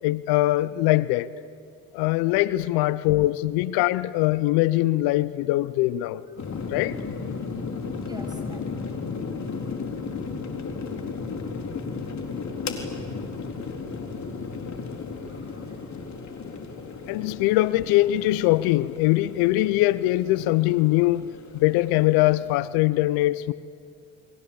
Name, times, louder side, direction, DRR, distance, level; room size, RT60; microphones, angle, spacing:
voice 1, 0.0-1.3 1.9-6.2 6.7-7.0 17.1-21.2 21.6-23.5, left 17 dB, 75° left, 0.8 m, -22 dB
sound 1, 6.4-22.6, left 4 dB, 50° left, 4.2 m, -35 dB
voice 2, 7.6-8.6 9.4-9.5 11.4-11.5 12.0-12.6 15.3-15.9, right 1 dB, 10° right, 7.2 m, -48 dB
29.5 x 23.0 x 8.7 m
hypercardioid pair, 65°, 37 cm